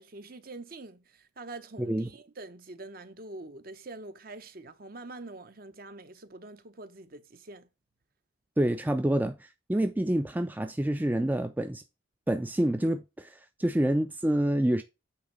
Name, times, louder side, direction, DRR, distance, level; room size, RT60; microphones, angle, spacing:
voice 1, 0.0-7.7, right 2 dB, 45° right, 0.8 m, -45 dB
voice 2, 1.8-2.1 8.6-11.8 12.3-14.8, right 1 dB, 10° right, 0.3 m, -27 dB
8.5 x 3.5 x 5.2 m
head